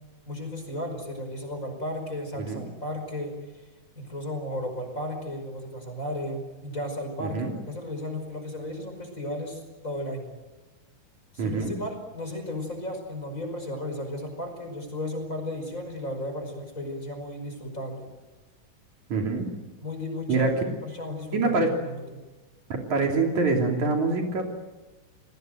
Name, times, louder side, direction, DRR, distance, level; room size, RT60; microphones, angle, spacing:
voice 1, 0.3-3.6 4.0-10.3 11.3-18.1 19.8-22.2, left 1 dB, 25° left, 5 dB, 5.6 m, -34 dB
voice 2, 7.2-7.5 11.4-11.8 19.1-19.5 20.3-20.5 21.3-21.7 22.7-24.5, right 3 dB, 65° right, 2 dB, 4.4 m, -25 dB
30.0 x 19.5 x 7.9 m, 1.2 s
omnidirectional pair, 3.7 m